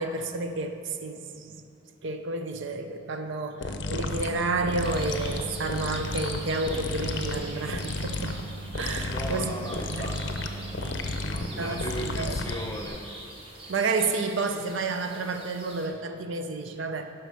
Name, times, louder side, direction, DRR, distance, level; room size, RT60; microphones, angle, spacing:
voice 1, 0.0-1.6 2.0-8.4 8.7-9.6 9.9-10.1 11.6-12.4 13.7-17.1, right 3 dB, 65° right, 7 dB, 0.5 m, -30 dB
sound 1, 3.6-12.9, left 2 dB, 60° left, 0.6 m, -33 dB
sound 2, 4.8-15.9, right 1 dB, 25° right, 1.0 m, -44 dB
voice 2, 9.0-13.1, equal, 15° left, 2 dB, 0.6 m, -37 dB
9.4 x 5.7 x 5.4 m, 2.6 s
head